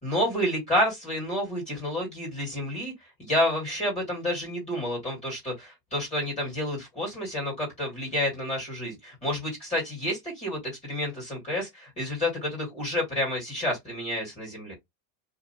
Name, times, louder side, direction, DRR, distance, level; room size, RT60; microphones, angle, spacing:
voice 1, 0.0-14.7, left 1 dB, 15° left, 1.9 m, -29 dB
2.9 x 2.5 x 2.7 m
supercardioid pair, 150°, 44 cm